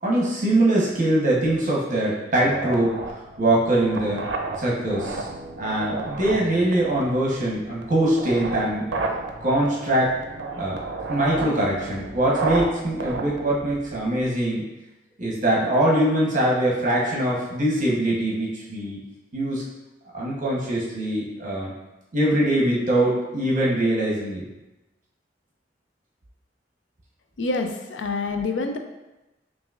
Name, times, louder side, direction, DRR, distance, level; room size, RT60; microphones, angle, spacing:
voice 1, 0.0-3.0 3.4-4.2 4.6-5.3 5.6-8.8 9.4-10.1 10.6-10.8 11.1-14.6 15.2-19.0 19.3-19.6 20.1-21.7 22.1-24.5, right 1 dB, 45° right, -4 dB, 0.9 m, -22 dB
sound 1, 2.3-14.3, right 3 dB, 75° right, 0.5 m, -32 dB
voice 2, 27.4-28.8, left 3 dB, 80° left, 5 dB, 0.5 m, -27 dB
5.9 x 2.6 x 2.4 m, 1.0 s
head